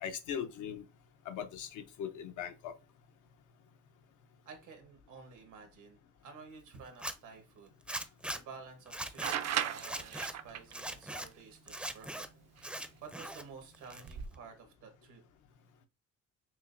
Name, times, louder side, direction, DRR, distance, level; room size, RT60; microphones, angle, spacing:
voice 1, 0.0-0.8 1.3-2.7, left 8 dB, 80° left, 0.7 m, -40 dB
voice 2, 4.4-7.8 8.0-12.3 12.6-15.2, right 5 dB, 85° right, 1.3 m, -52 dB
Zipper (clothing), 6.9-7.1 7.9-8.4 8.9-9.3 9.8-10.3 10.7-11.3 11.7-12.3 12.6-13.4 13.7-14.3, right 1 dB, 5° right, 0.5 m, -40 dB
sound 1, 9.2-10.7 12.6-12.7 13.9-14.3, right 9 dB, 60° right, 0.5 m, -35 dB
5.9 x 2.1 x 2.5 m
cardioid pair, 90°, 30 cm